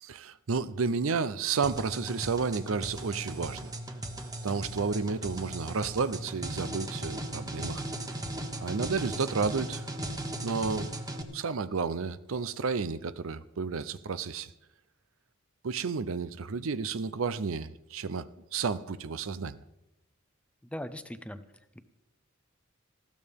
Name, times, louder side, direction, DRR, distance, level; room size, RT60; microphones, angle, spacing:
voice 1, 0.0-3.7 4.4-7.8 8.6-9.9 10.4-10.9 11.3-14.5 15.6-19.6, right 5 dB, 70° right, 0.6 m, -31 dB
sound 1, 1.6-11.2, right 1 dB, 20° right, 1.3 m, -37 dB
voice 2, 20.7-21.4 21.7-21.8, equal, 5° left, 0.7 m, -39 dB
19.5 x 15.5 x 3.6 m
head